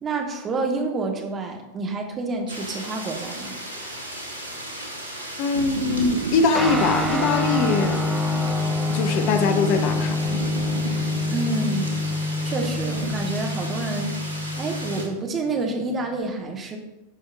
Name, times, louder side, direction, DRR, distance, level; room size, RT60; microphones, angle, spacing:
voice 1, 0.0-3.5 11.3-11.9 12.4-16.8, right 3 dB, 25° right, 2 dB, 1.2 m, -28 dB
sound 1, 2.5-15.1, right 1 dB, 85° left, 1.5 m, -36 dB
voice 2, 5.4-8.0 8.9-10.4, left 4 dB, 45° left, 8 dB, 0.8 m, -22 dB
sound 2, 5.5-13.4, right 4 dB, 70° right, 0.6 m, -34 dB
Guitar, 6.5-16.2, left 2 dB, 5° right, 0.8 m, -27 dB
11.0 x 5.3 x 2.3 m, 0.97 s
figure-of-eight pair, 90°, 0 cm